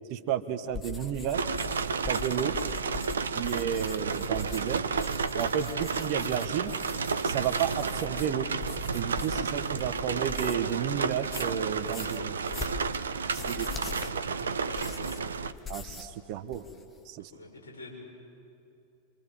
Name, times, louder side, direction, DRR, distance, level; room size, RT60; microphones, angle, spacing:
voice 1, 0.1-1.4 2.1-2.6 3.3-4.9 5.3-6.7 7.2-8.5 8.9-12.4 13.3-13.7 14.3-14.4 15.7-16.6 17.0-17.3, right 9 dB, 45° right, 11 dB, 1.4 m, -32 dB
sound 1, 0.7-10.7 11.1-16.2 16.4-17.0, left 6 dB, 20° left, 2.1 m, -43 dB
sound 2, 1.3-15.5, right 5 dB, 70° right, 0.8 m, -32 dB
voice 2, 13.3-14.1 14.4-15.3 17.3-18.0, left 2 dB, 70° left, 0 dB, 6.8 m, -46 dB
26.5 x 26.0 x 7.7 m, 2.8 s
figure-of-eight pair, 90°, 0 cm